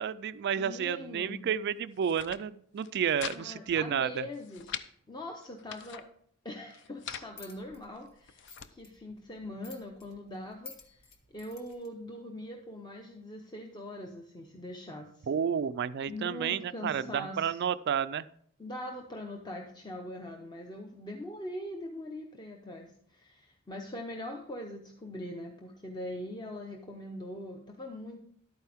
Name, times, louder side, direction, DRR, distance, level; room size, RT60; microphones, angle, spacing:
voice 1, 0.0-4.2 15.3-18.3, right 8 dB, 50° right, 15 dB, 0.3 m, -31 dB
voice 2, 0.6-1.5 3.4-6.0 6.4-11.1 11.3-15.3 16.1-17.6 18.6-28.2, left 1 dB, 20° left, 2 dB, 0.7 m, -42 dB
sound 1, 1.9-2.4 2.8-3.4 3.7-3.8 4.2-4.9 5.4-6.1 6.7-7.3 8.0-8.7, left 8 dB, 55° left, 0.5 m, -42 dB
sound 2, 7.4-11.9, left 4 dB, 70° left, 1.5 m, -54 dB
11.5 x 8.9 x 3.5 m, 0.64 s
head